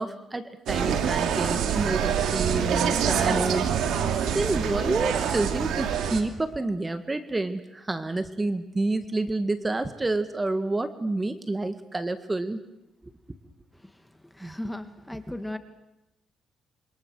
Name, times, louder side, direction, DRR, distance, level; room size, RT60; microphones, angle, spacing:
voice 1, 0.0-3.7 4.0-12.6 14.4-14.5, right 2 dB, 20° right, 9 dB, 1.9 m, -29 dB
Insect, 0.7-6.2, right 8 dB, 80° right, 2.8 m, -25 dB
voice 2, 14.2-15.6, left 1 dB, 5° left, 9 dB, 2.0 m, -36 dB
27.0 x 25.0 x 6.4 m, 0.92 s
cardioid pair, 90°, 0 cm